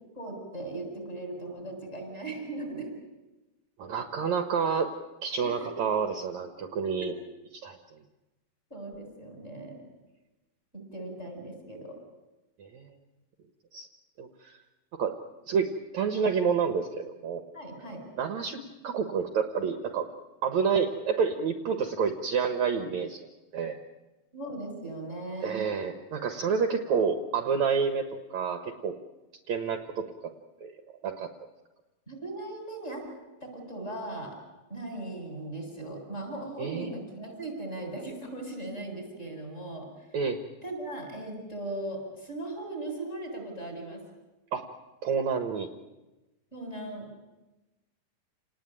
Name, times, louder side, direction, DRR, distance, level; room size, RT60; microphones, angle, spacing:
voice 1, 0.1-2.9 5.4-5.9 6.8-7.1 8.7-9.8 10.7-12.0 17.5-18.0 24.3-25.6 32.1-33.1 33.4-34.4 34.7-39.9 40.6-44.0 46.5-47.1, right 2 dB, 15° left, 2 dB, 8.2 m, -38 dB
voice 2, 3.8-4.9 5.2-7.1 7.5-8.0 12.6-12.9 13.7-13.9 14.2-14.6 14.9-15.1 15.4-17.4 18.2-20.1 20.4-23.3 23.5-23.8 25.4-29.0 29.5-30.3 30.6-30.7 31.0-31.3 36.6-36.9 40.1-40.4 44.5-44.7 45.0-45.7, right 6 dB, 60° right, 7 dB, 2.4 m, -29 dB
29.0 x 19.5 x 9.1 m, 1.1 s
omnidirectional pair, 4.0 m